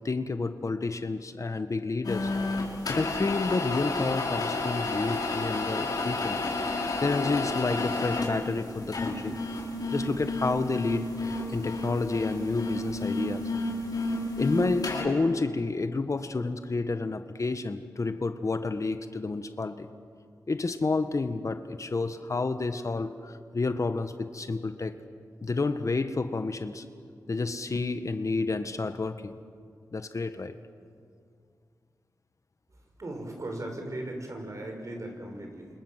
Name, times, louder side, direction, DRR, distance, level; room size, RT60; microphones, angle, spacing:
voice 1, 0.0-2.3 2.9-6.4 7.0-9.4 9.9-13.5 14.4-19.9 20.5-25.0 25.4-26.8 27.3-29.4 29.9-30.6, left 3 dB, 50° left, 9 dB, 1.5 m, -30 dB
sound 1, 2.0-15.0, left 2 dB, 65° left, 5.5 m, -31 dB
voice 2, 33.0-35.7, right 1 dB, 50° right, 3 dB, 6.5 m, -37 dB
29.5 x 26.5 x 7.6 m, 2.2 s
cardioid pair, 55°, 7 cm